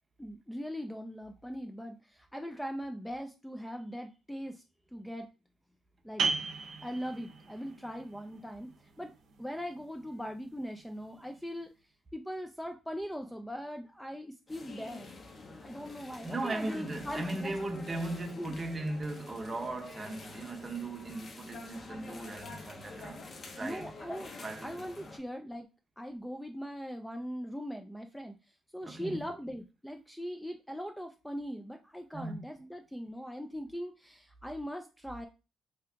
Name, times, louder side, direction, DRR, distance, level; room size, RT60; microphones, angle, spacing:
voice 1, 0.2-4.6 4.9-5.3 6.0-6.3 6.8-9.1 9.4-11.7 12.1-15.1 15.4-17.5 18.4-18.6 23.6-24.3 24.6-25.7 26.0-35.3, equal, 5° left, 0.3 m, -40 dB
sound 1, 6.2-11.6, right 4 dB, 70° right, 0.6 m, -38 dB
sound 2, 14.5-25.2, left 3 dB, 40° left, 0.6 m, -48 dB
voice 2, 16.2-23.9 24.4-24.7 28.8-29.2 32.1-32.4, right 2 dB, 30° right, 0.7 m, -38 dB
2.8 x 2.4 x 3.4 m
cardioid pair, 90°, 0 cm